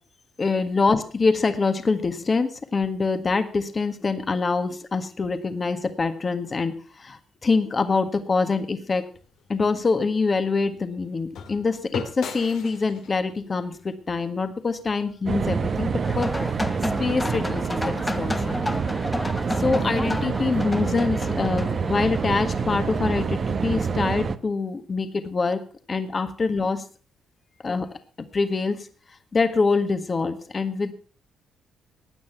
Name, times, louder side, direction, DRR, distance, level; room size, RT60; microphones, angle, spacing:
voice 1, 0.4-9.0 9.5-16.3 17.0-18.6 19.6-25.6 25.9-26.9 27.6-27.9 28.2-28.9 29.3-30.9, left 4 dB, 35° left, 9 dB, 1.6 m, -25 dB
sound 1, 9.1-15.3, left 6 dB, 80° left, 2.0 m, -40 dB
sound 2, 15.3-24.4, right 5 dB, 45° right, 0.9 m, -27 dB
sound 3, 16.0-23.3, left 1 dB, 15° left, 0.9 m, -32 dB
16.0 x 9.6 x 5.8 m, 0.40 s
cardioid pair, 90°, 0 cm